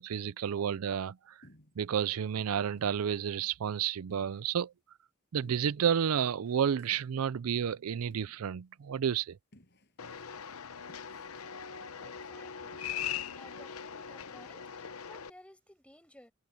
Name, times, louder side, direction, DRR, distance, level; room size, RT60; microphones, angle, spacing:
voice 1, 0.0-1.5 1.8-4.7 5.3-9.4, right 8 dB, 85° right, 0.4 m, -31 dB
sound 1, 1.4-2.0 2.4-2.5 2.8-3.0 3.4-3.5 4.1-4.7 5.4-5.9 6.7-7.3 8.1-8.5 8.9-9.0 9.5-10.5 10.9-11.6, left 1 dB, 50° left, 6.3 m, -61 dB
sound 2, 6.4-7.5, right 1 dB, 60° right, 4.8 m, -70 dB
sound 3, 10.0-15.3, left 8 dB, 85° left, 0.8 m, -41 dB
voice 2, 12.0-12.9 13.3-16.3, left 1 dB, 5° left, 5.8 m, -57 dB
head